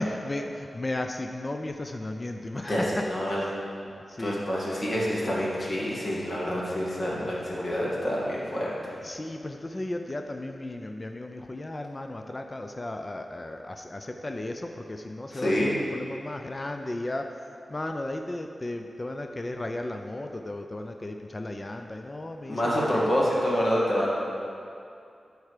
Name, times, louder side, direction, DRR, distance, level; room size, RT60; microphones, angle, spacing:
voice 1, 0.0-3.0 3.9-4.4 7.4-7.5 9.0-23.1, left 1 dB, 30° left, 4 dB, 0.4 m, -35 dB
voice 2, 3.1-3.4 4.2-8.9 15.3-15.7 22.5-24.1, equal, 45° left, -5 dB, 2.3 m, -27 dB
13.0 x 4.7 x 5.0 m, 2.5 s
wide cardioid pair, 90°, 0 cm